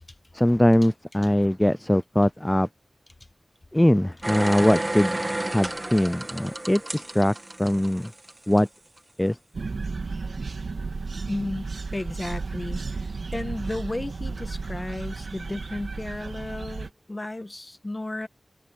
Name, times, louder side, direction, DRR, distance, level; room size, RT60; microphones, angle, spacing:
voice 1, 0.3-2.7 3.7-5.2 5.5-7.3 7.6-8.1 8.5-8.7 9.2-9.4, left 1 dB, 10° left, 0.3 m, -21 dB
sound 1, 4.2-8.6 9.0-9.1, right 1 dB, 25° right, 2.3 m, -31 dB
sound 2, 9.5-16.9, right 4 dB, 75° right, 2.2 m, -33 dB
voice 2, 11.3-11.7 11.9-18.3, left 2 dB, 25° left, 1.8 m, -33 dB
wide cardioid pair, 90°, 0 cm